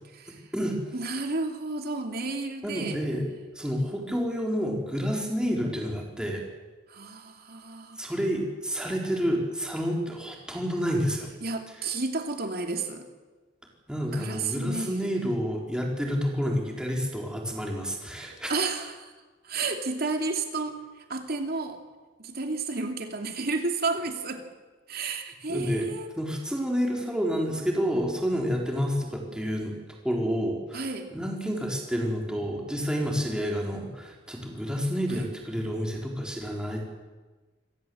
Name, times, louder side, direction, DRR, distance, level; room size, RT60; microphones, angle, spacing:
voice 1, 0.1-0.4 0.9-3.0 6.9-8.0 11.4-13.1 14.1-15.1 18.5-19.1 19.4-20.8 21.1-21.8 22.2-24.5 24.9-26.2 30.7-31.1 35.1-35.3, right 3 dB, 55° right, 4 dB, 2.8 m, -32 dB
voice 2, 2.6-3.3 3.5-6.4 8.0-11.3 13.9-18.5 25.5-25.9 26.2-29.7 30.0-30.8 31.1-36.8, equal, 5° right, -1 dB, 4.2 m, -29 dB
26.5 x 17.5 x 7.9 m, 1.3 s
head